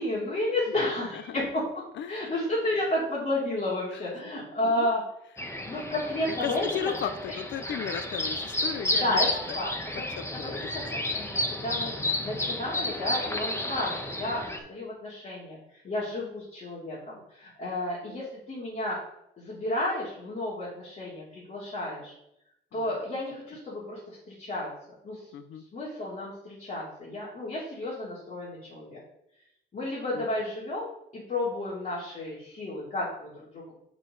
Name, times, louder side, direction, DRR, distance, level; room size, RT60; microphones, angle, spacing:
voice 1, 0.0-1.6 2.1-5.0 5.7-6.7 7.3-7.4 9.0-9.3 9.5-10.1 10.3-10.6 10.9-11.9 12.2-19.0 19.4-22.1 22.7-24.7 25.0-25.3 25.7-29.0 29.7-33.6, left 1 dB, 40° left, -7 dB, 3.1 m, -32 dB
sound 1, 5.4-14.6, left 1 dB, 15° left, 1.2 m, -32 dB
voice 2, 6.3-9.2 9.5-9.6 10.2-10.7 12.0-12.3 22.7-22.8 25.3-25.6 30.1-30.3, left 9 dB, 70° left, 12 dB, 0.8 m, -36 dB
7.4 x 6.4 x 4.0 m, 0.78 s
cardioid pair, 90°, 20 cm